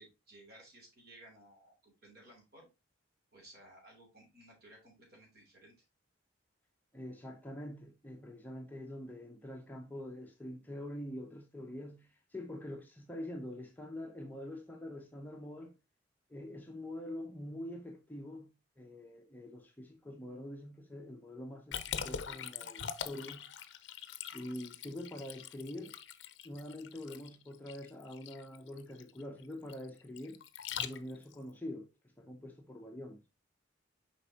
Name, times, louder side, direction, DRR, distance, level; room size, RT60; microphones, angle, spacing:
voice 1, 0.0-2.7 3.3-5.7, right 1 dB, 50° right, 3.2 m, -58 dB
voice 2, 6.9-15.7 16.3-23.5 24.3-26.0 26.4-30.4 30.8-33.2, left 1 dB, 10° left, 0.7 m, -45 dB
Liquid, 21.7-31.4, left 8 dB, 60° left, 0.5 m, -43 dB
6.8 x 5.1 x 2.8 m
head